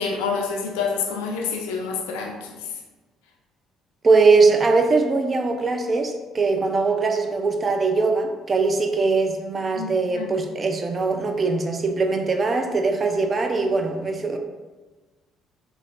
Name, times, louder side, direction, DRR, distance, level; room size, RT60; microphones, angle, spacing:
voice 1, 0.0-2.7 9.7-9.9 10.2-10.3, left 5 dB, 80° left, 1 dB, 0.3 m, -27 dB
voice 2, 4.0-14.4, right 4 dB, 35° right, 5 dB, 0.3 m, -21 dB
3.1 x 2.3 x 2.4 m, 1.2 s
hypercardioid pair, 50°, 0 cm